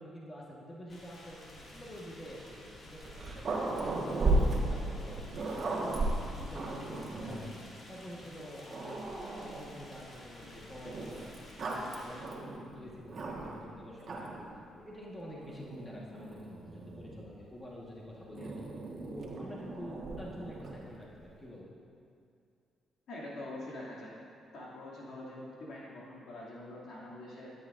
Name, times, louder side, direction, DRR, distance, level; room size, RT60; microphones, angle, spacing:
voice 1, 0.0-4.3 4.7-7.5 7.9-9.0 9.4-11.3 11.6-14.5 14.7-18.6 19.0-21.7, equal, 20° left, -4 dB, 1.5 m, -47 dB
sound 1, 0.9-12.2, left 1 dB, 50° left, 2.2 m, -52 dB
Growling, 3.0-7.6 8.2-8.3 8.7-9.8 10.9-13.7 14.0-14.5 15.4-17.2 18.4-20.9, right 2 dB, 50° right, 1.5 m, -35 dB
voice 2, 23.1-24.2 24.5-27.5, left 1 dB, 70° left, -6 dB, 2.5 m, -44 dB
13.5 x 9.4 x 2.6 m, 2.4 s
cardioid pair, 90°, 0 cm